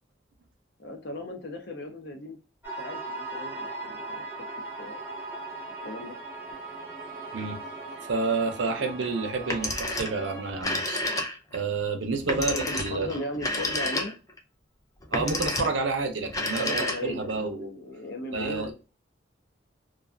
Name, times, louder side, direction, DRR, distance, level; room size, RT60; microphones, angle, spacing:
voice 1, 0.8-2.4 2.8-5.0 5.8-6.2 8.8-8.9 12.4-14.1 16.1-18.7, left 1 dB, 60° left, 0.6 m, -37 dB
sound 1, 2.6-10.5, right 3 dB, 10° right, 0.7 m, -38 dB
voice 2, 8.0-11.0 11.5-13.1 15.1-17.7 18.3-18.7, right 4 dB, 70° right, 0.5 m, -29 dB
Telephone, 9.4-10.2 10.5-11.6 12.3-14.4 15.0-15.8 16.3-17.3, left 2 dB, 15° left, 0.3 m, -30 dB
2.4 x 2.3 x 2.3 m
head